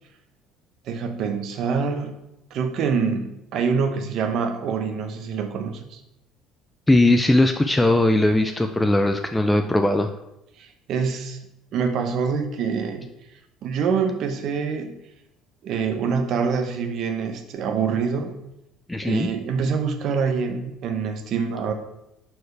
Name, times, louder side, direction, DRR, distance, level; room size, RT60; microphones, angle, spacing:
voice 1, 0.9-2.1 2.5-6.0 10.6-11.4 11.7-13.1 13.6-14.9 15.6-18.3 19.0-21.7, right 5 dB, 45° right, 6 dB, 0.9 m, -25 dB
voice 2, 6.9-10.1 18.9-19.3, left 1 dB, 5° left, 6 dB, 0.3 m, -19 dB
11.0 x 4.6 x 3.3 m, 0.86 s
cardioid pair, 165°, 0 cm